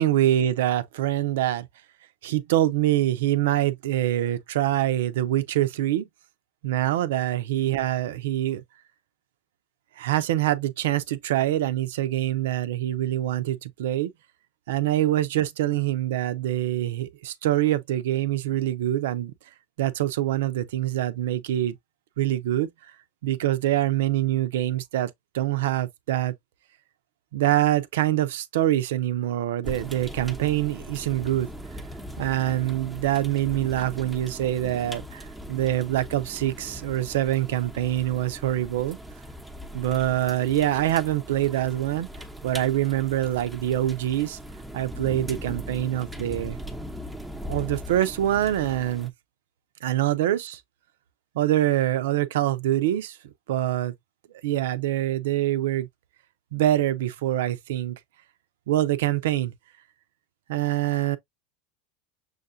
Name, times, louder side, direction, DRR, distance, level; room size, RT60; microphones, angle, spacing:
voice 1, 0.0-1.7 2.2-6.1 6.6-8.6 10.0-14.1 14.7-19.3 19.8-21.7 22.2-22.7 23.2-26.3 27.3-31.5 32.2-39.0 39.7-42.1 42.4-44.4 44.7-46.6 47.5-49.1 49.8-50.6 51.3-53.2 53.5-53.9 54.4-55.9 56.5-58.0 58.7-59.5 60.5-61.2, right 13 dB, 80° right, 0.6 m, -25 dB
sound 1, 29.6-49.1, equal, 5° right, 0.9 m, -39 dB
6.4 x 2.4 x 2.6 m
hypercardioid pair, 100°, 0 cm